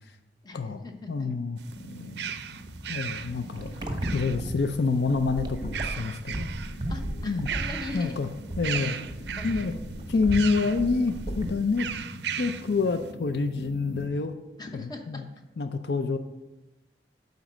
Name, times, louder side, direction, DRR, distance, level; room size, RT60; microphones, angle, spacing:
voice 1, 0.4-1.3 6.9-8.2 8.7-9.0 9.4-9.5 9.7-9.8 14.6-15.2, left 3 dB, 25° left, 4 dB, 0.9 m, -41 dB
voice 2, 1.1-1.6 2.9-3.7 4.1-6.5 7.3-7.5 7.9-8.3 8.6-9.0 9.4-9.7 10.1-11.9 12.4-14.3 14.7-15.2 15.6-16.2, left 4 dB, 70° left, 8 dB, 0.5 m, -27 dB
sound 1, 1.6-14.1, equal, 90° left, 1.4 m, -44 dB
sound 2, 1.6-4.7 5.6-6.8 7.2-8.2 8.6-9.8 10.3-10.8 11.8-12.7, right 8 dB, 70° right, 0.4 m, -36 dB
sound 3, 3.6-11.9, right 1 dB, 25° right, 0.9 m, -35 dB
9.0 x 4.1 x 6.1 m, 0.98 s
head